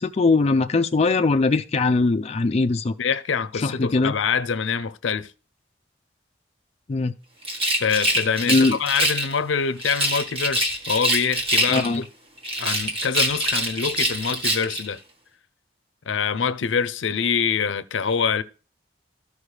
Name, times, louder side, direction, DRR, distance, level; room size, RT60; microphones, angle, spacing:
voice 1, 0.0-2.9 3.6-4.1 6.9-7.1 8.5-8.8 11.7-12.0, left 3 dB, 35° left, 0.4 m, -20 dB
voice 2, 3.0-5.3 7.8-12.1 12.6-15.0 16.1-18.4, left 6 dB, 85° left, 0.5 m, -25 dB
Rattle, 7.4-9.3 9.8-12.1 12.4-14.9, right 1 dB, 30° right, 1.5 m, -24 dB
14.0 x 4.9 x 3.3 m
head